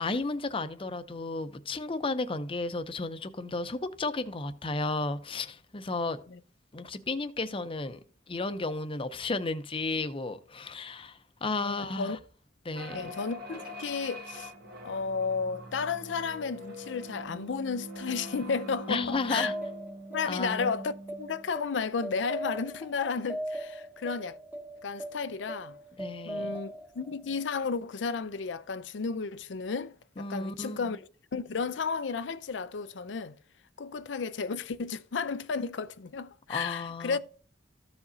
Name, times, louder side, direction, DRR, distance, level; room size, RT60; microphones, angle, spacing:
voice 1, 0.0-6.2 6.7-8.0 8.3-12.2 12.6-13.1 18.9-19.5 20.3-20.8 26.0-26.6 30.2-30.8 36.5-37.2, left 3 dB, 30° left, 0.6 m, -33 dB
voice 2, 11.6-12.2 12.9-14.5 14.8-19.5 20.1-24.4 24.8-25.8 26.3-33.4 33.8-37.2, left 5 dB, 80° left, 0.5 m, -33 dB
sound 1, 12.7-21.5, equal, 55° right, 1.7 m, -44 dB
sound 2, 18.8-27.8, right 1 dB, 10° right, 1.0 m, -40 dB
14.5 x 5.0 x 2.7 m
head